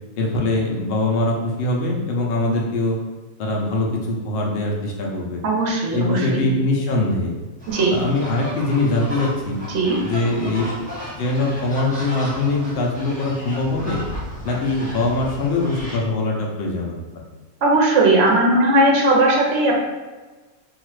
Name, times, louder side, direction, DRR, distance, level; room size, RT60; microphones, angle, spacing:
voice 1, 0.2-3.0 3.4-5.4 5.9-7.3 7.9-9.6 10.0-10.9 11.2-14.0 14.4-17.0, left 2 dB, 65° left, -1 dB, 0.6 m, -22 dB
voice 2, 5.4-6.5 7.7-8.0 9.7-10.0 17.6-19.8, right 2 dB, 60° right, -1 dB, 0.8 m, -18 dB
sound 1, 7.6-16.0, equal, 5° left, 1.1 m, -34 dB
2.7 x 2.4 x 3.1 m, 1.3 s
omnidirectional pair, 1.6 m